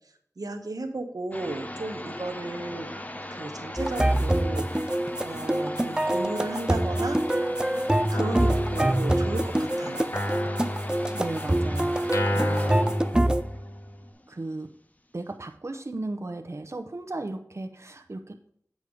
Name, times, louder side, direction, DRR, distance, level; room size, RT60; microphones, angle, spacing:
voice 1, 0.4-2.9 3.3-4.9 5.2-7.2 8.1-10.1, right 2 dB, 90° right, 5 dB, 0.9 m, -34 dB
sound 1, 1.3-14.7, left 1 dB, 25° left, 0.6 m, -39 dB
sound 2, 3.8-13.4, right 1 dB, 15° right, 0.3 m, -25 dB
Guitar, 8.1-9.6 10.1-14.0, equal, 55° left, 1.1 m, -31 dB
voice 2, 10.8-12.8 14.3-14.7 15.1-18.5, right 2 dB, 50° right, 5 dB, 0.7 m, -36 dB
8.2 x 5.2 x 5.1 m, 0.66 s
wide cardioid pair, 55°, 6 cm